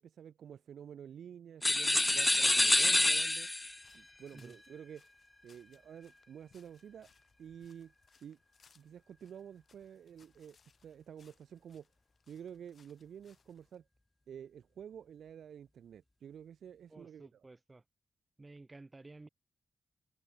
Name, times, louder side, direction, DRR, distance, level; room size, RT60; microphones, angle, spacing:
voice 1, 0.0-3.5 3.9-5.0 5.4-7.1 7.4-7.9 8.2-8.4 8.7-10.6 10.8-11.9 12.3-13.9 14.3-17.3, right 8 dB, 80° right, 0.6 m, -50 dB
sound 1, 1.6-3.8, left 1 dB, 20° left, 0.3 m, -27 dB
sound 2, 3.4-13.8, left 6 dB, 65° left, 3.2 m, -70 dB
voice 2, 16.9-17.8 18.4-19.3, right 2 dB, 35° right, 2.9 m, -53 dB
open air
supercardioid pair, 45°, 0 cm